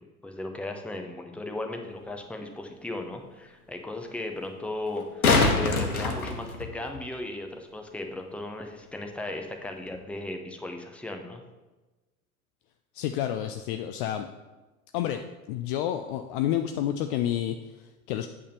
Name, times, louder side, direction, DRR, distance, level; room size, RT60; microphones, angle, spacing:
voice 1, 0.0-11.4, left 2 dB, 5° left, 4 dB, 0.7 m, -36 dB
sound 1, 2.0-2.1 4.9-7.0 9.9-10.0, left 3 dB, 75° left, 1.2 m, -24 dB
voice 2, 12.9-14.3 14.9-15.2 15.5-18.3, left 11 dB, 40° left, 7 dB, 0.4 m, -29 dB
8.5 x 3.7 x 6.7 m, 1.1 s
figure-of-eight pair, 80°, 44 cm